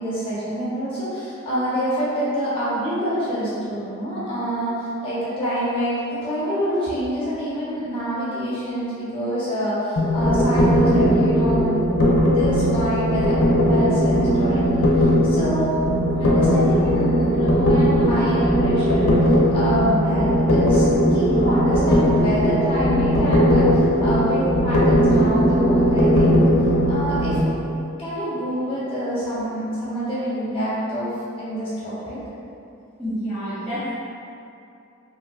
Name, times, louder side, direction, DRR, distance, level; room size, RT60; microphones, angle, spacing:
voice 1, 0.0-11.9 12.2-15.8 16.2-20.8 21.1-26.4 26.9-27.4 28.0-32.2, equal, 25° left, -10 dB, 0.9 m, -26 dB
sound 1, 10.0-27.4, equal, 85° left, 0.5 m, -18 dB
voice 2, 33.0-33.9, equal, ahead, -14 dB, 0.4 m, -28 dB
3.3 x 2.7 x 2.4 m, 2.6 s
head